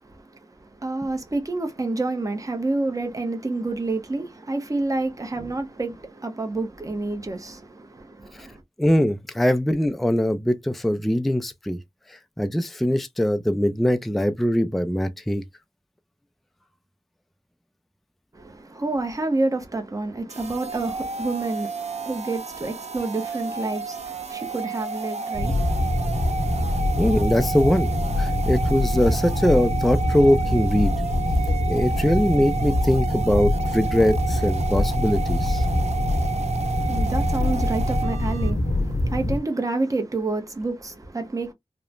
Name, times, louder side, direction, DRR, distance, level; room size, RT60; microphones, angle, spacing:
voice 1, 0.0-8.6 18.3-26.6 36.6-41.5, right 2 dB, 30° right, 0.7 m, -29 dB
voice 2, 8.8-11.8 12.1-15.4 27.0-27.9 28.2-30.9 31.7-35.7, equal, ahead, 0.3 m, -22 dB
sound 1, 20.3-38.5, right 5 dB, 70° right, 0.5 m, -31 dB
sound 2, 25.3-39.4, left 1 dB, 75° left, 0.8 m, -24 dB
2.9 x 2.1 x 2.3 m
wide cardioid pair, 75°, 12 cm